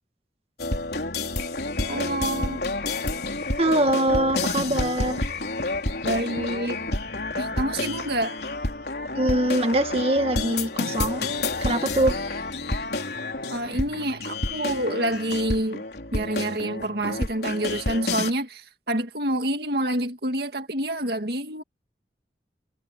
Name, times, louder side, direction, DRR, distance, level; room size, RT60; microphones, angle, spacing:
sound 1, 0.6-18.3, left 2 dB, 65° left, 3.8 m, -29 dB
voice 1, 1.9-2.6 6.0-6.8 7.4-8.4 13.5-15.8 16.1-18.6 18.9-21.6, right 1 dB, 60° right, 2.1 m, -27 dB
voice 2, 3.6-5.3 9.1-11.3 11.6-12.2, right 1 dB, 35° right, 2.1 m, -23 dB
head